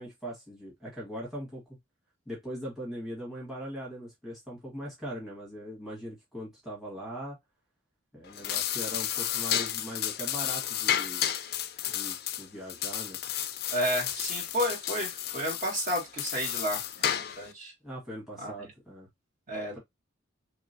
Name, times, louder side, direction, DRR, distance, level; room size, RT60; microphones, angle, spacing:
voice 1, 0.0-1.6 2.3-7.4 8.1-11.2 11.9-13.2 17.8-19.1 19.7-19.8, equal, ahead, 1.4 m, -40 dB
sound 1, 8.2-17.5, left 11 dB, 50° left, 0.4 m, -32 dB
voice 2, 13.7-17.7 18.4-18.7 19.5-19.8, equal, 40° right, 1.6 m, -32 dB
3.2 x 2.9 x 2.6 m
head